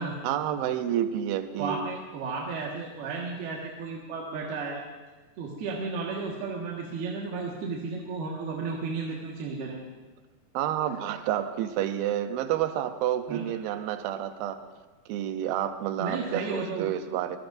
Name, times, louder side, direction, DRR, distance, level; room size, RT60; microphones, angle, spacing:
voice 1, 0.2-1.8 10.5-14.6 15.1-17.4, right 11 dB, 80° right, 8 dB, 2.2 m, -29 dB
voice 2, 1.6-4.8 5.4-9.8 13.3-13.4 16.0-16.9, right 4 dB, 65° right, -3 dB, 3.4 m, -33 dB
25.5 x 21.0 x 2.6 m, 1.3 s
omnidirectional pair, 5.2 m